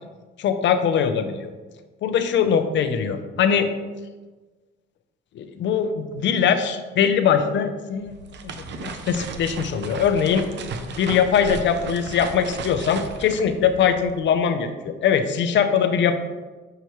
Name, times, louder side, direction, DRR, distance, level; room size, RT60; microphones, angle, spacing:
voice 1, 0.4-1.5 2.0-3.7 5.4-8.1 8.4-10.5 11.0-16.2, left 7 dB, 65° left, 8 dB, 0.7 m, -21 dB
sound 1, 7.9-14.3, right 4 dB, 65° right, 0.7 m, -36 dB
6.8 x 5.7 x 3.1 m, 1.3 s
cardioid pair, 90°, 20 cm